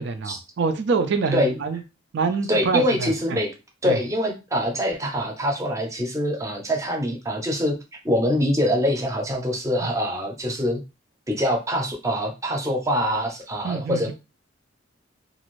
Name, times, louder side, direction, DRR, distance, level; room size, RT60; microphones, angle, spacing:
voice 1, 0.0-1.8 2.1-3.4 3.9-4.0 13.6-14.1, right 4 dB, 65° right, 0.4 m, -25 dB
voice 2, 2.5-3.5 3.8-7.8 8.0-10.8 11.3-14.1, equal, 15° right, 0.6 m, -24 dB
2.5 x 2.4 x 3.0 m
head